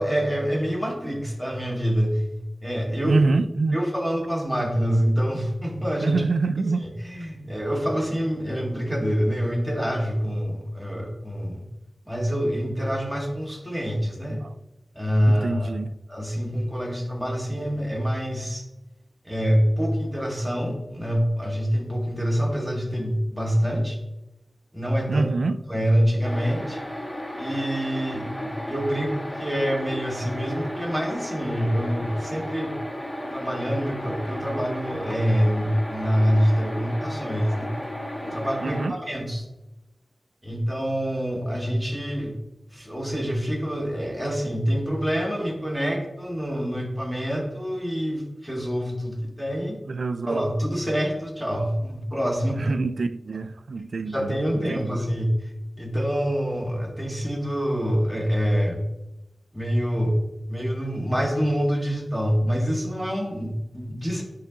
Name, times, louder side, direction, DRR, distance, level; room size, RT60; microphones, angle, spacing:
voice 1, 0.0-2.2 2.6-3.2 3.7-6.2 6.8-11.6 12.1-14.4 15.0-15.7 16.1-18.6 19.3-24.0 24.7-25.3 25.7-26.8 27.4-32.7 33.3-37.8 38.2-39.4 40.4-42.3 42.7-49.8 50.3-52.8 54.0-55.3 55.8-58.8 59.5-60.2 60.5-64.2, equal, ahead, 2.0 m, -26 dB
voice 2, 3.0-3.8 6.0-6.9 14.4-14.5 15.3-15.9 25.1-25.6 38.6-39.0 49.9-50.5 52.6-55.0, right 3 dB, 85° right, 0.3 m, -25 dB
sound 1, 26.2-38.9, equal, 20° left, 1.4 m, -34 dB
10.0 x 4.5 x 3.8 m
wide cardioid pair, 70°, 0 cm